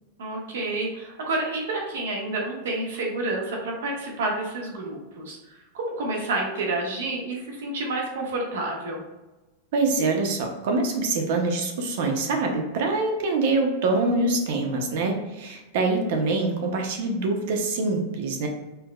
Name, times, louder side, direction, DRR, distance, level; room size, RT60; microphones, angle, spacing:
voice 1, 0.2-9.0, right 2 dB, 80° right, -1 dB, 0.9 m, -29 dB
voice 2, 9.7-18.5, right 3 dB, 50° right, 3 dB, 0.5 m, -25 dB
4.5 x 2.1 x 2.3 m, 1.1 s
supercardioid pair, 180°, 0 cm